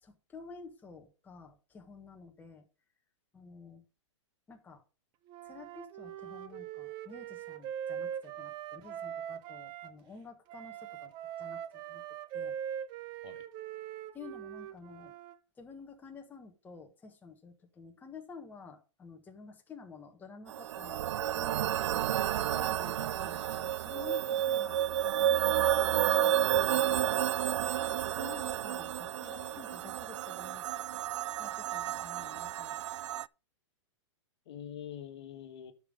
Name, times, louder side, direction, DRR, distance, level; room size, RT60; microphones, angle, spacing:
voice 1, 0.0-2.7 3.3-3.8 4.5-4.8 5.4-11.1 11.4-12.0 12.3-12.6 14.1-15.1 15.6-21.1 21.3-24.8 25.2-27.1 27.9-30.8 31.4-32.8, left 5 dB, 10° left, 1.4 m, -51 dB
Wind instrument woodwind instrument, 5.3-9.9 10.5-15.3, right 9 dB, 30° right, 0.7 m, -41 dB
sound 1, 20.5-33.3, right 11 dB, 70° right, 0.4 m, -31 dB
voice 2, 29.2-29.6 34.4-35.7, left 9 dB, 60° left, 1.5 m, -46 dB
9.9 x 5.6 x 5.2 m
hypercardioid pair, 145°, 16 cm